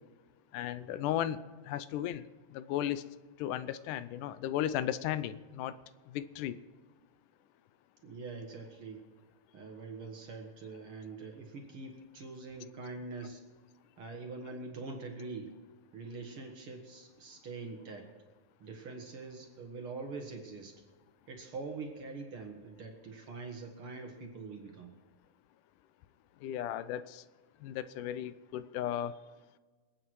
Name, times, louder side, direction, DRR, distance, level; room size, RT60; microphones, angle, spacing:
voice 1, 0.5-1.4 1.7-2.2 2.5-3.0 3.4-5.7 6.1-6.6 26.4-27.2 27.6-29.2, left 11 dB, 85° left, 14 dB, 2.2 m, -35 dB
voice 2, 8.0-9.0 9.5-13.4 14.0-15.5 15.9-18.1 18.6-20.8 21.3-25.0, right 3 dB, 50° right, 3 dB, 2.1 m, -44 dB
26.0 x 8.8 x 4.7 m, 1.3 s
omnidirectional pair, 3.6 m